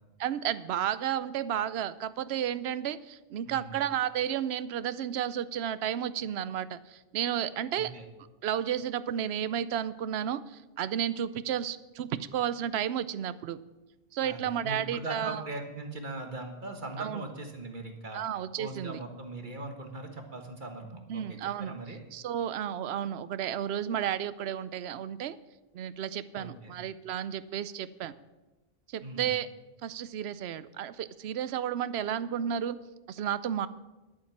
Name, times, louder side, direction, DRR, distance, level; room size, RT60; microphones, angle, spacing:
voice 1, 0.2-7.9 8.4-13.6 14.1-15.4 17.0-17.2 18.1-19.0 21.1-21.7 22.1-25.4 25.7-28.1 28.9-29.5 29.8-32.8 33.1-33.7, right 10 dB, 80° right, 16 dB, 0.9 m, -32 dB
voice 2, 7.7-8.0 14.2-18.2 18.6-22.0 26.3-26.8 29.0-29.3, right 2 dB, 50° right, 4 dB, 1.7 m, -40 dB
11.5 x 8.5 x 7.3 m, 1.1 s
omnidirectional pair, 1.1 m